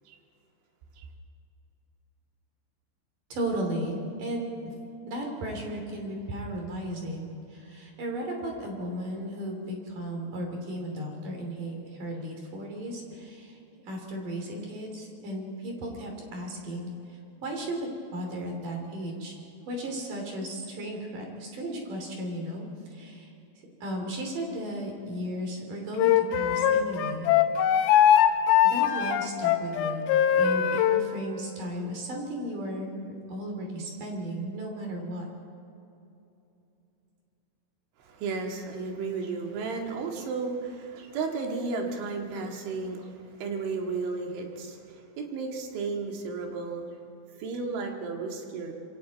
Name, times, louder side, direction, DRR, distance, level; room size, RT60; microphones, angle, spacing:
voice 1, 3.3-4.5 5.1-13.6 13.9-16.9 17.4-19.4 19.7-23.3 23.8-27.3 28.6-30.0 30.3-35.2, right 1 dB, 50° right, 1 dB, 4.2 m, -35 dB
Wind instrument woodwind instrument, 26.0-31.0, left 10 dB, 85° left, 3.4 m, -21 dB
voice 2, 38.0-46.9 47.4-48.8, right 4 dB, 80° right, 1 dB, 4.3 m, -33 dB
27.0 x 23.5 x 4.1 m, 2.8 s
omnidirectional pair, 5.4 m